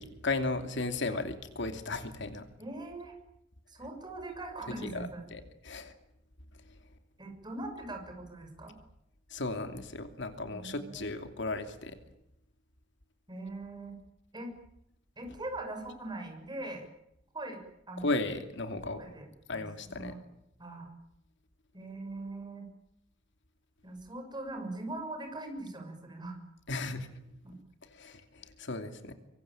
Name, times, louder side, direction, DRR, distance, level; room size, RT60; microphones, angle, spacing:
voice 1, 0.0-2.5 4.8-5.9 9.3-12.0 18.0-19.0 19.5-20.2 26.7-27.1 27.9-29.1, left 2 dB, 65° left, 7 dB, 2.8 m, -35 dB
voice 2, 2.6-3.2 3.7-5.2 7.2-8.8 10.4-11.0 13.3-13.9 14.3-14.5 15.2-16.9 17.3-17.6 17.9-18.1 18.9-20.2 20.6-20.9 21.7-22.7 23.8-26.4 27.4-27.5, right 2 dB, 20° right, 4 dB, 6.4 m, -41 dB
24.5 x 24.5 x 8.9 m, 0.81 s
head